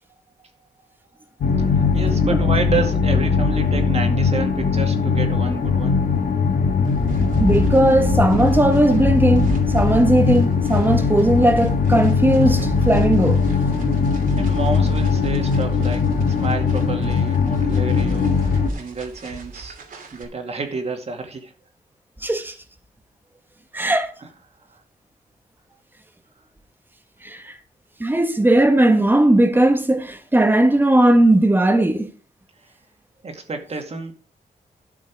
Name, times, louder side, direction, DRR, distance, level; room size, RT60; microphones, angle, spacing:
sound 1, 1.4-18.7, left 5 dB, 75° left, 1.8 m, -20 dB
voice 1, 1.6-6.0 14.4-19.8 20.1-21.5 24.2-24.3 24.7-24.8 33.2-34.1, right 4 dB, 45° right, 2.3 m, -29 dB
sound 2, 6.8-20.2, right 3 dB, 70° right, 2.7 m, -32 dB
voice 2, 7.4-13.4 22.2-22.5 23.7-24.1 27.2-27.5 28.0-32.1, right 1 dB, 15° right, 1.6 m, -17 dB
12.5 x 6.2 x 4.6 m
wide cardioid pair, 115°, 15 cm